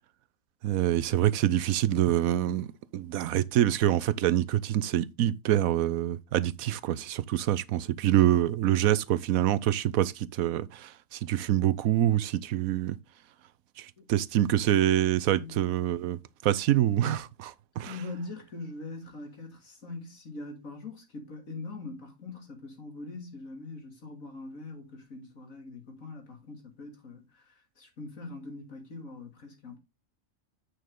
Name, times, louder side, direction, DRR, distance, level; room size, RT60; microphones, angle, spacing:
voice 1, 0.6-2.7 2.9-13.0 13.8-16.2 16.4-18.0, right 12 dB, 80° right, 1.1 m, -26 dB
voice 2, 17.9-29.8, left 3 dB, 70° left, 2.9 m, -42 dB
9.3 x 6.5 x 3.8 m
omnidirectional pair, 1.5 m